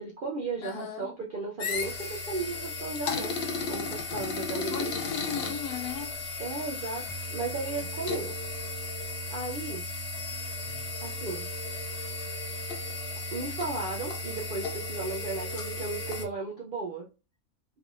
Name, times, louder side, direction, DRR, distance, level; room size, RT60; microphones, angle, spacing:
voice 1, 0.0-3.3 3.7-4.9 6.4-7.0 7.3-8.3 9.3-9.8 11.0-11.5 13.3-17.1, right 3 dB, 65° right, 0.5 m, -35 dB
voice 2, 0.6-1.1 4.1-4.3 4.7-6.1 10.6-10.8, left 7 dB, 85° left, 1.2 m, -37 dB
sound 1, 1.6-16.2, left 2 dB, 55° left, 0.7 m, -35 dB
3.3 x 3.3 x 2.5 m
omnidirectional pair, 1.5 m